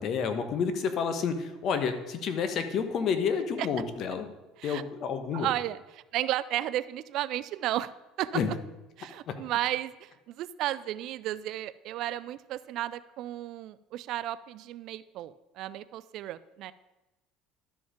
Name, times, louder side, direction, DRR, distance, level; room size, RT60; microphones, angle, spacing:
voice 1, 0.0-4.3 4.6-5.5 8.3-8.5 9.3-9.4, left 6 dB, 50° left, 8 dB, 1.1 m, -29 dB
voice 2, 5.3-7.9 8.2-8.4 9.0-16.7, right 13 dB, 60° right, 16 dB, 0.4 m, -33 dB
12.0 x 5.2 x 5.1 m, 1.0 s
cardioid pair, 115°, 0 cm